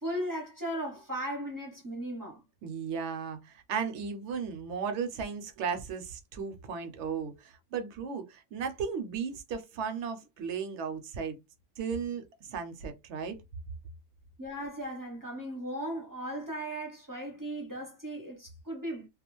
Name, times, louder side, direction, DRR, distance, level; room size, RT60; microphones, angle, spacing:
voice 1, 0.0-2.4 14.4-19.1, right 1 dB, 25° right, 0.5 m, -37 dB
voice 2, 2.6-11.4 11.8-13.4, right 6 dB, 70° right, 0.8 m, -35 dB
2.3 x 2.3 x 3.0 m
omnidirectional pair, 1.3 m